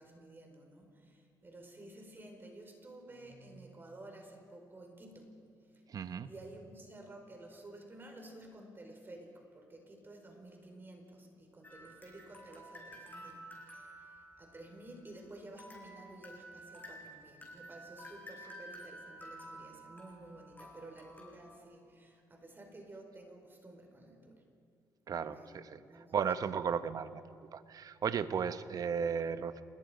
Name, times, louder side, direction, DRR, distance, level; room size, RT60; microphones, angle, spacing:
voice 1, 0.0-5.3 5.9-13.4 13.7-24.4 25.1-25.6 25.9-26.3, right 1 dB, 25° right, 3 dB, 5.1 m, -52 dB
voice 2, 5.9-6.3 25.1-25.8 26.1-27.2 27.5-29.6, right 7 dB, 50° right, 12 dB, 1.1 m, -35 dB
sound 1, 11.6-15.2 15.6-21.6, right 1 dB, 25° left, 6.6 m, -52 dB
28.0 x 20.5 x 5.3 m, 2.5 s
supercardioid pair, 75°, 8 cm